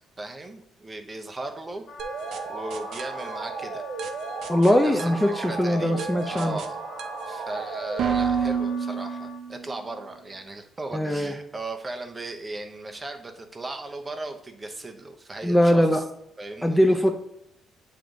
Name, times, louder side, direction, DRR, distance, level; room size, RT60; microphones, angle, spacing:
voice 1, 0.2-1.8 2.5-3.8 4.7-5.1 5.5-6.8 7.3-16.0 16.4-17.0, right 2 dB, 25° right, 5 dB, 0.9 m, -37 dB
Wind instrument woodwind instrument, 1.9-9.4, left 6 dB, 50° left, 0.6 m, -44 dB
sound 1, 2.0-9.8, right 6 dB, 75° right, 0.6 m, -31 dB
voice 2, 4.5-6.6 10.9-11.3 15.4-16.0 16.6-17.1, equal, 5° left, 4 dB, 0.5 m, -21 dB
7.8 x 3.4 x 3.8 m, 0.78 s
cardioid pair, 90°, 0 cm